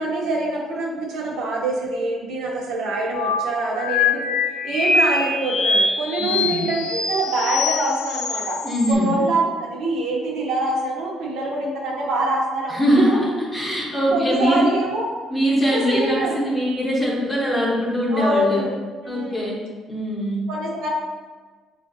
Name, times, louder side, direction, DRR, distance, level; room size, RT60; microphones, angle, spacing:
voice 1, 0.0-4.3 4.6-8.6 8.9-12.8 13.1-13.2 14.1-15.1 15.7-16.4 18.1-18.7 19.0-19.5 20.5-20.9, right 2 dB, 75° right, -3 dB, 0.8 m, -25 dB
sound 1, 3.1-8.9, left 4 dB, 65° left, 0.3 m, -23 dB
voice 2, 6.2-6.6 8.6-9.1 12.7-14.6 15.3-18.6 19.0-19.6 19.9-20.4, equal, 15° left, -5 dB, 0.8 m, -22 dB
5.6 x 2.4 x 2.6 m, 1.4 s
cardioid pair, 170°, 0 cm